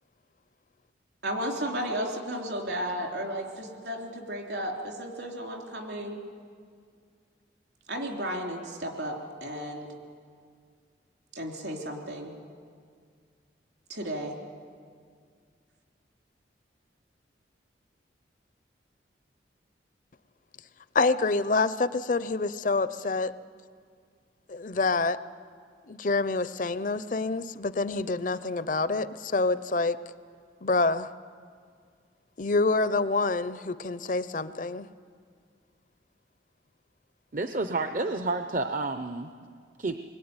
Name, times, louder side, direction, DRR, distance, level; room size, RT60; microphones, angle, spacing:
voice 1, 1.2-6.2 7.9-9.9 11.3-12.3 13.9-14.4, equal, 70° right, 1 dB, 3.5 m, -34 dB
voice 2, 20.9-23.3 24.5-25.2 25.9-30.0 30.6-31.1 32.4-34.9, left 3 dB, 45° left, 14 dB, 0.6 m, -27 dB
voice 3, 37.3-39.3 39.8-40.0, right 3 dB, 45° right, 7 dB, 0.7 m, -30 dB
25.5 x 21.5 x 9.7 m, 2.1 s
head